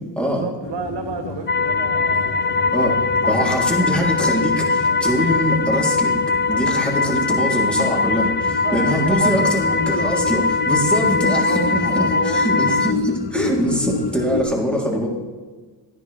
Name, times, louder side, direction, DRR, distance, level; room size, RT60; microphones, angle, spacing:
voice 1, 0.2-3.9 6.5-6.9 8.3-10.5 11.3-12.7 13.5-13.6, right 6 dB, 75° right, 6 dB, 1.2 m, -33 dB
sound 1, 0.6-14.4, left 5 dB, 75° left, 1.1 m, -30 dB
sound 2, 1.5-12.9, left 4 dB, 25° left, 0.5 m, -21 dB
voice 2, 3.3-6.2 6.5-15.1, equal, ahead, -3 dB, 3.6 m, -23 dB
14.0 x 10.0 x 3.5 m, 1.4 s
cardioid pair, 75°, 44 cm